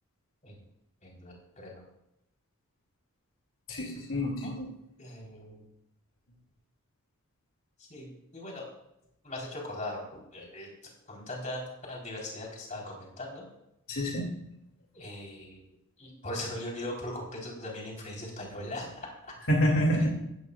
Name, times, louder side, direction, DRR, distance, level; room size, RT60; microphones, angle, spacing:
voice 1, 1.0-1.8 4.1-4.5 5.0-5.7 7.8-8.7 9.2-10.7 11.1-13.4 14.9-15.6 16.0-18.9, left 1 dB, 35° left, -2 dB, 4.2 m, -40 dB
voice 2, 3.7-4.7 13.9-14.3 19.5-20.1, equal, 70° left, -1 dB, 2.7 m, -27 dB
16.0 x 15.0 x 2.5 m, 0.84 s
head